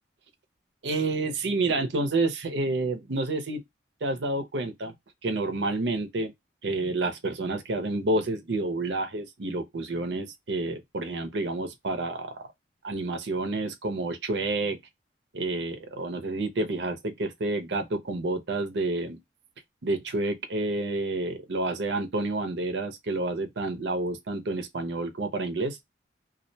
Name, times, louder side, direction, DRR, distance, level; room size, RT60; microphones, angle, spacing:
voice 1, 0.8-3.6 4.0-4.9 5.2-6.3 6.6-12.4 12.8-14.8 15.3-19.2 19.8-25.8, right 2 dB, 75° right, 0.6 m, -29 dB
2.3 x 2.1 x 2.6 m
head